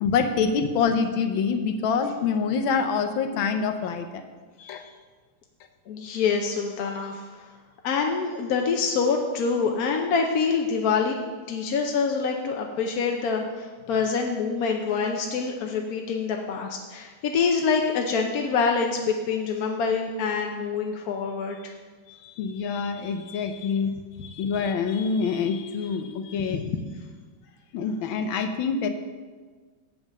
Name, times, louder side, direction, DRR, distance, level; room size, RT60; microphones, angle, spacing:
voice 1, 0.0-4.2 4.7-4.8 22.1-23.9 24.2-26.6 27.7-28.9, left 5 dB, 80° left, 7 dB, 1.5 m, -26 dB
voice 2, 4.6-4.9 5.9-7.3 7.8-11.2 11.5-21.7 26.5-26.6, left 5 dB, 65° left, 2 dB, 1.0 m, -26 dB
7.9 x 5.4 x 7.2 m, 1.4 s
omnidirectional pair, 2.2 m